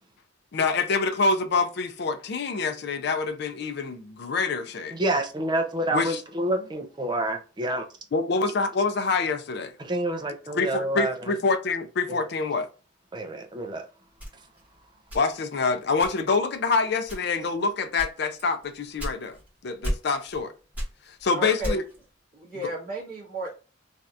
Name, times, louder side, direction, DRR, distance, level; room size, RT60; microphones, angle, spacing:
voice 1, 0.5-5.0 5.9-6.2 8.1-9.7 10.5-12.7 15.1-19.4 19.6-20.5 21.0-21.8, left 4 dB, 60° left, 0.4 m, -26 dB
voice 2, 4.9-7.9 9.8-11.3 12.1-12.2 13.1-13.8, right 1 dB, 25° right, 0.5 m, -28 dB
sound 1, 14.2-15.6 16.0-16.5 17.0-17.5 18.0-19.5 19.8-20.4 20.7-22.1, equal, 10° right, 1.5 m, -33 dB
voice 3, 21.3-21.8 22.3-23.5, right 1 dB, 50° right, 1.3 m, -33 dB
3.2 x 2.7 x 2.4 m
head